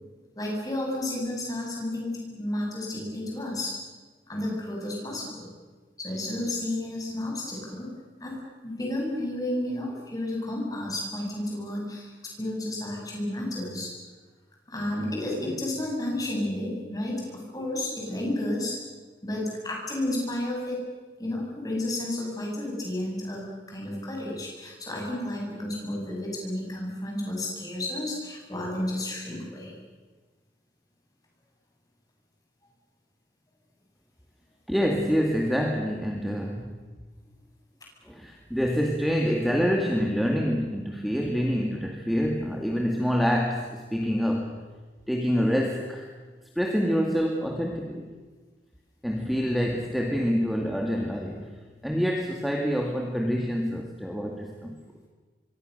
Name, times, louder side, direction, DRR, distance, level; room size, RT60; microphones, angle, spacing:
voice 1, 0.4-3.8 4.3-5.5 6.0-7.9 8.2-13.9 14.7-18.8 19.2-20.8 21.2-29.7, left 1 dB, 20° left, -1 dB, 7.3 m, -32 dB
voice 2, 34.7-36.8 38.1-44.6 45.1-46.1 46.6-48.1 49.0-51.5 51.8-54.8, equal, ahead, 0 dB, 2.1 m, -26 dB
27.0 x 24.0 x 6.7 m, 1.3 s
head